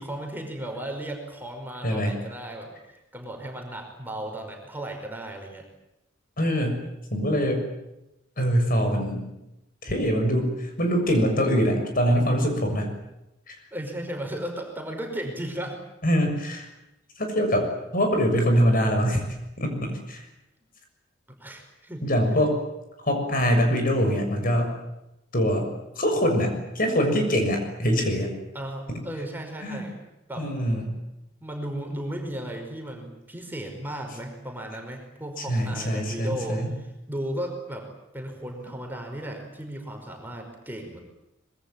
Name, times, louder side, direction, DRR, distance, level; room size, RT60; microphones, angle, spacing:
voice 1, 0.0-2.7 3.1-5.7 13.7-15.8 21.3-22.0 28.5-30.7 31.4-37.9 38.1-41.0, right 1 dB, 10° right, 2 dB, 5.3 m, -35 dB
voice 2, 1.8-2.2 6.4-6.8 7.1-7.6 8.4-9.3 9.8-12.9 13.5-13.6 16.0-16.7 17.2-19.2 19.6-20.2 22.0-22.6 23.0-24.7 25.3-25.7 25.9-28.3 28.9-29.0 29.6-29.8 30.4-30.9 35.5-36.7, equal, 45° left, 4 dB, 6.9 m, -23 dB
25.5 x 22.5 x 9.0 m, 0.90 s
head